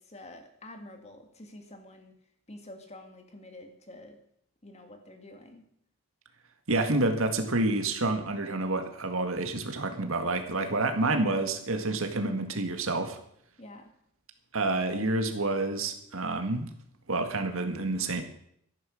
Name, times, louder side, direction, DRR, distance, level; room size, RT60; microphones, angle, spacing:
voice 1, 0.0-2.1 2.5-4.2 4.6-5.6 13.6-13.9, left 1 dB, 30° left, 5 dB, 1.9 m, -48 dB
voice 2, 6.7-13.2 14.5-16.7 17.1-18.2, right 2 dB, 65° right, 6 dB, 1.8 m, -28 dB
14.0 x 10.5 x 6.4 m, 0.71 s
head